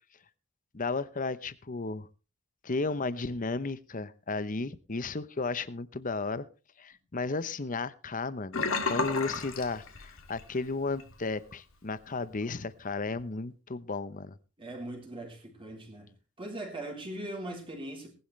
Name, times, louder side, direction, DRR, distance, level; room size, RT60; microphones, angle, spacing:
voice 1, 0.7-2.1 2.6-6.5 6.8-14.4, left 3 dB, 40° left, 0.8 m, -34 dB
Sink (filling or washing), 8.5-10.5 10.8-11.1 11.5-11.6, left 4 dB, 65° left, 2.2 m, -32 dB
voice 2, 14.6-16.1 16.4-18.1, right 1 dB, 25° right, 3.6 m, -40 dB
19.0 x 11.5 x 3.2 m
head